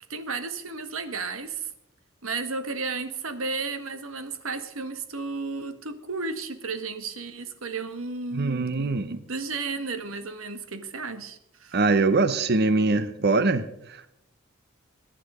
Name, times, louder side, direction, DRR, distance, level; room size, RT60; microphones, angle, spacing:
voice 1, 0.1-1.7 2.2-11.7, right 4 dB, 80° right, 1.6 m, -33 dB
voice 2, 8.3-9.2 11.7-14.1, right 3 dB, 50° right, 0.8 m, -23 dB
22.0 x 10.0 x 5.0 m
head